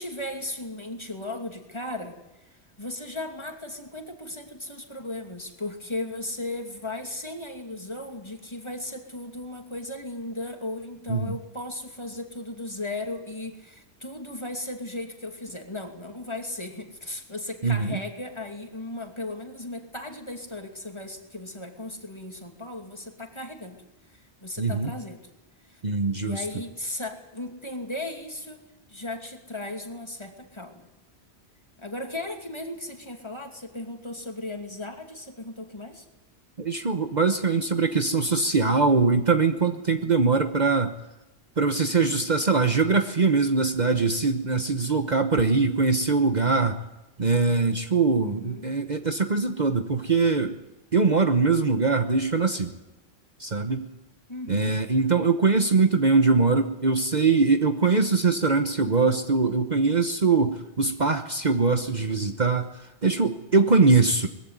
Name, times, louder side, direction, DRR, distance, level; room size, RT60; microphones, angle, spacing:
voice 1, 0.0-25.3 25.6-25.8 26.2-28.6 28.9-30.9 31.8-36.0 48.2-48.7 54.3-54.8, left 2 dB, 25° left, 3 dB, 2.7 m, -36 dB
voice 2, 17.6-18.0 24.6-24.9 25.8-26.4 36.6-40.9 41.6-46.8 47.2-50.6 50.9-52.7 53.4-53.9 54.5-62.7 63.0-64.3, right 4 dB, 40° right, 7 dB, 1.2 m, -22 dB
21.0 x 15.0 x 9.5 m, 0.97 s
omnidirectional pair, 1.1 m